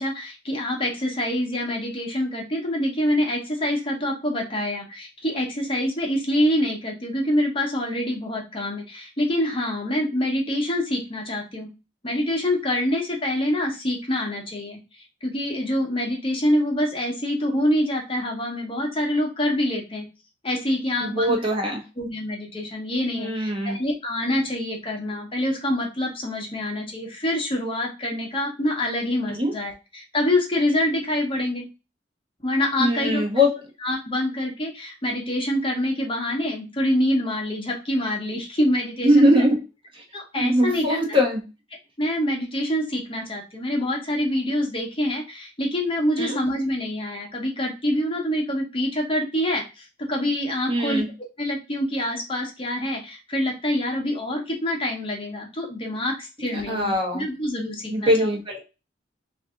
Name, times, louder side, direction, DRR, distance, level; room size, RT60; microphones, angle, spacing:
voice 1, 0.0-11.7 12.0-20.1 20.4-21.4 22.0-31.7 32.4-33.2 33.8-39.3 40.1-41.2 42.0-58.3, left 1 dB, 30° left, 1 dB, 0.9 m, -26 dB
voice 2, 21.0-21.8 23.2-23.8 29.3-29.5 32.8-33.5 39.0-39.6 39.9-40.0 40.3-41.4 46.2-46.4 50.7-51.1 56.4-57.2 57.6-58.6, equal, 30° right, 0 dB, 1.0 m, -21 dB
3.2 x 2.6 x 3.6 m, 0.28 s
head